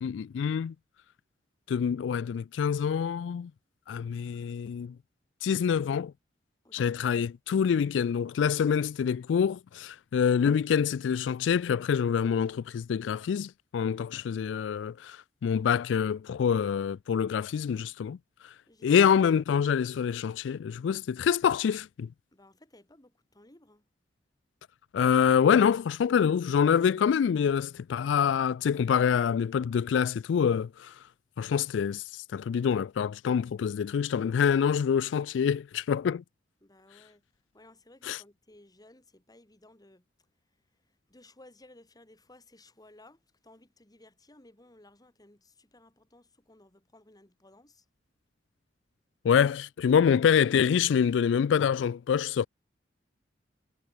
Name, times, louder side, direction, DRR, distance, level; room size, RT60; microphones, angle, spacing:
voice 1, 0.0-0.7 1.7-3.5 3.9-4.9 5.4-6.1 6.7-18.2 18.8-22.1 24.9-30.9 31.4-36.2 38.0-38.2 49.2-52.5, left 7 dB, 90° left, 0.3 m, -26 dB
voice 2, 6.6-7.0 18.7-19.2 22.3-23.9 36.6-37.2 37.5-40.0 40.9-47.9, left 1 dB, 20° left, 2.6 m, -57 dB
head